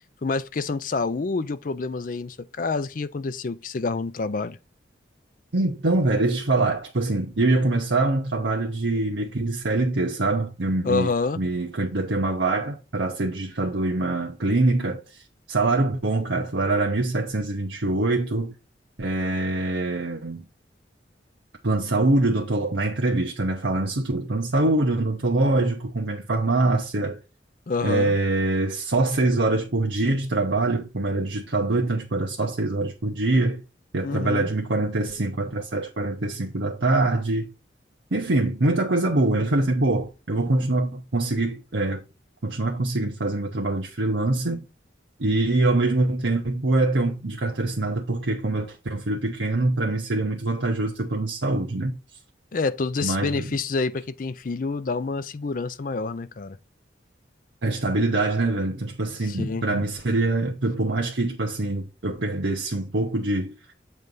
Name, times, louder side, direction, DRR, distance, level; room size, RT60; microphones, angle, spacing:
voice 1, 0.2-4.6 10.8-11.4 27.7-28.2 34.0-34.5 52.5-56.6 59.2-59.8, left 4 dB, 45° left, 0.4 m, -28 dB
voice 2, 5.5-11.1 11.4-15.2 15.5-18.5 19.0-20.4 21.6-27.2 27.8-33.6 33.9-37.5 38.1-42.0 42.4-44.6 45.2-52.0 53.0-53.5 57.6-63.5, right 2 dB, 80° right, 0.9 m, -24 dB
7.7 x 3.3 x 5.4 m
head